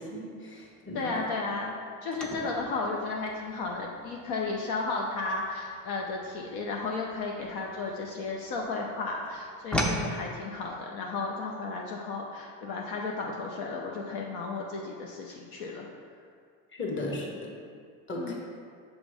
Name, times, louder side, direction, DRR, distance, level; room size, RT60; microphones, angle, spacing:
voice 1, 0.0-1.1 16.7-17.5 18.1-18.3, left 2 dB, 30° left, -2 dB, 1.3 m, -36 dB
voice 2, 0.9-1.7 2.0-15.9 18.1-18.3, left 3 dB, 65° left, -1 dB, 0.8 m, -34 dB
sound 1, 2.1-8.6 8.9-10.1, equal, 5° left, 0.4 m, -36 dB
6.2 x 3.2 x 4.8 m, 2.1 s
supercardioid pair, 100°, 42 cm